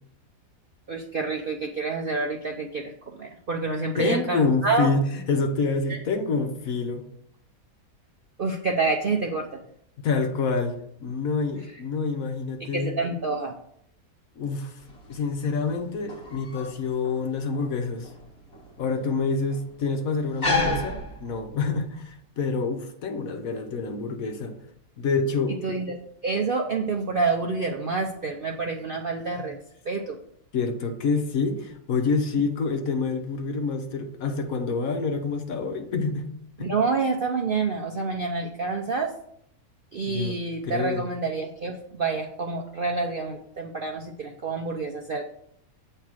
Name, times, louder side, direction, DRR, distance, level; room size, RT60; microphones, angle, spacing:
voice 1, 0.9-4.9 5.9-6.0 8.4-9.6 12.7-13.5 20.5-20.8 25.5-26.0 26.2-29.6 29.8-30.2 36.6-39.1 39.9-45.2, right 3 dB, 55° right, 2 dB, 0.6 m, -28 dB
voice 2, 4.0-7.0 10.0-12.9 14.4-14.8 15.1-18.1 18.8-24.5 25.0-25.6 29.4-29.5 30.5-36.3 36.6-36.7 40.1-40.3 40.6-41.0, left 4 dB, 65° left, 6 dB, 1.2 m, -27 dB
sound 1, 14.8-21.8, left 3 dB, 40° left, 1.5 m, -33 dB
8.4 x 3.3 x 6.2 m, 0.70 s
omnidirectional pair, 1.7 m